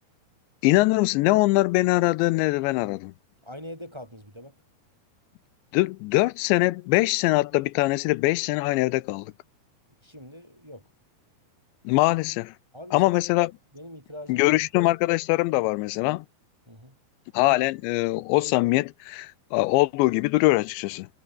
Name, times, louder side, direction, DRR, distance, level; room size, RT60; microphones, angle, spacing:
voice 1, 0.6-3.1 5.7-9.3 11.9-12.5 12.9-13.5 14.3-16.3 17.3-21.1, left 20 dB, 85° left, 3.0 m, -22 dB
voice 2, 3.4-4.5 10.0-10.9 12.7-13.0 13.7-14.6 16.7-17.0, left 1 dB, 5° right, 4.1 m, -43 dB
omnidirectional pair, 5.1 m